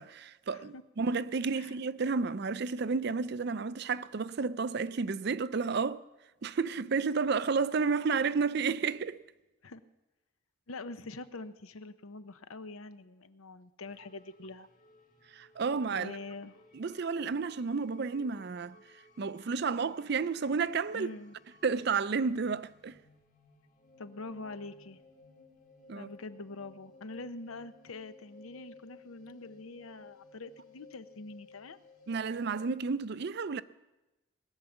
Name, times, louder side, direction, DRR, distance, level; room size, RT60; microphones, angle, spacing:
voice 1, 0.0-6.0 6.4-9.2 15.3-16.1 16.7-18.8 19.2-21.1 21.6-23.0 25.9-26.1 32.1-33.6, right 5 dB, 50° right, 0.4 m, -31 dB
voice 2, 0.5-0.8 1.6-1.8 9.6-9.8 10.7-14.7 15.9-16.6 20.9-21.4 24.0-25.0 25.9-31.8, left 3 dB, 80° left, 0.8 m, -44 dB
sound 1, 13.8-32.7, left 3 dB, 35° left, 1.7 m, -59 dB
20.0 x 8.9 x 7.1 m
head